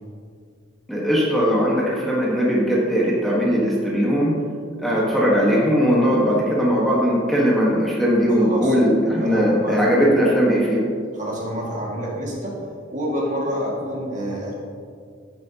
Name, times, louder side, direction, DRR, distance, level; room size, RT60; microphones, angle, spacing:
voice 1, 0.9-4.3 4.8-10.8, equal, ahead, -6 dB, 1.5 m, -19 dB
voice 2, 8.4-8.8 9.2-9.8 11.1-12.6 12.9-14.5, equal, 40° right, -3 dB, 2.1 m, -28 dB
10.5 x 9.5 x 2.9 m, 2.2 s
head